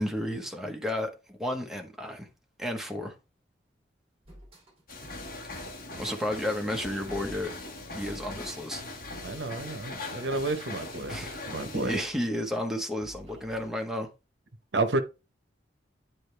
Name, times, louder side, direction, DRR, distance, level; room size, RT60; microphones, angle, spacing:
voice 1, 0.0-2.3 2.6-3.1 5.9-7.5 7.9-8.8 11.1-11.3 11.7-14.1, left 1 dB, 5° right, 1.2 m, -32 dB
sound 1, 4.3-13.7, equal, 35° right, 2.6 m, -51 dB
sound 2, 4.9-12.0, left 2 dB, 50° left, 1.9 m, -41 dB
voice 2, 9.2-12.0 14.7-15.0, right 2 dB, 65° right, 1.0 m, -31 dB
10.5 x 4.4 x 3.4 m
head